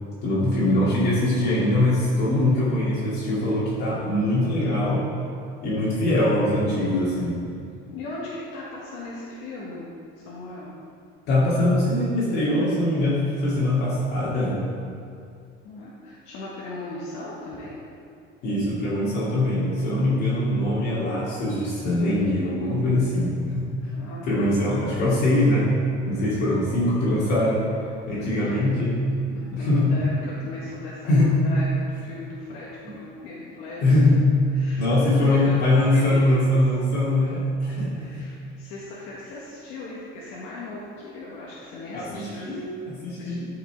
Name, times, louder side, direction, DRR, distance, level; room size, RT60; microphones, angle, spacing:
voice 1, 0.2-5.1 5.6-7.4 11.3-14.6 18.4-23.7 24.2-25.8 26.0-27.7 28.1-28.9 29.5-29.9 31.1-31.3 32.8-32.9 33.8-34.2 34.8-38.1 41.9-43.5, left 1 dB, 50° left, -9 dB, 2.3 m, -22 dB
voice 2, 7.9-9.8 10.2-10.7 15.6-17.7 23.9-24.8 28.1-28.7 29.3-33.9 34.6-35.6 35.9-36.6 37.2-37.3 37.9-42.6 43.1-43.4, left 2 dB, 75° left, -6 dB, 1.6 m, -38 dB
12.5 x 5.7 x 4.6 m, 2.4 s
cardioid pair, 180°, 21 cm